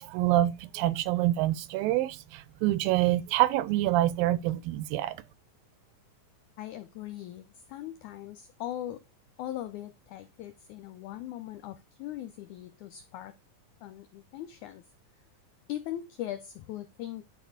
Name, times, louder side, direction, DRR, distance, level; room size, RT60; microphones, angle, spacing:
voice 1, 0.0-5.2, right 15 dB, 80° right, 2.3 m, -26 dB
voice 2, 6.6-9.0 9.4-13.4 13.8-14.8 15.7-17.2, left 12 dB, 85° left, 1.7 m, -40 dB
10.5 x 4.2 x 4.9 m
omnidirectional pair, 4.1 m